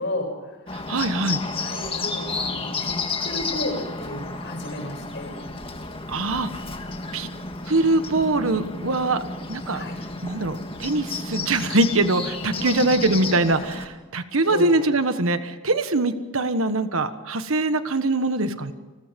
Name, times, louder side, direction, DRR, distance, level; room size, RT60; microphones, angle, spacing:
voice 1, 0.0-0.6 1.6-5.4 9.7-10.0 12.6-12.8 14.5-14.6, left 1 dB, 50° left, 3 dB, 7.4 m, -33 dB
Bird, 0.7-13.9, left 3 dB, 25° left, 1.9 m, -32 dB
voice 2, 0.7-1.4 6.1-6.5 7.1-7.3 7.7-9.2 9.5-9.8 10.2-18.7, right 2 dB, 70° right, 10 dB, 1.4 m, -23 dB
29.0 x 21.0 x 5.3 m, 1.3 s
head